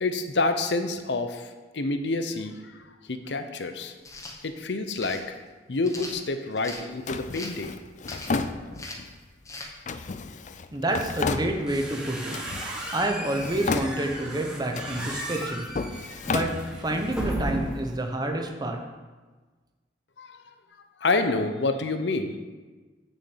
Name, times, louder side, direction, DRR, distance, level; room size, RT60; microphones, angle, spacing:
voice 1, 0.0-3.9 4.4-5.4 5.7-7.8 20.2-20.5 21.0-22.4, left 3 dB, 70° left, 8 dB, 0.8 m, -28 dB
sound 1, 4.0-4.4 5.0-5.2 5.8-6.8 7.3-7.6 8.0-8.4 8.7-9.1 9.4-9.7, left 2 dB, 15° left, 1.1 m, -39 dB
Drawer open or close, 7.1-9.1 9.9-11.9 12.3-13.1 13.4-14.3 14.7-17.1, left 4 dB, 45° left, 0.5 m, -33 dB
voice 2, 10.7-12.4 12.9-15.6 16.3-18.8, right 1 dB, 20° right, 3 dB, 1.0 m, -28 dB
sound 2, 11.4-18.0, right 1 dB, 5° right, 1.4 m, -35 dB
6.5 x 6.4 x 7.3 m, 1.3 s
head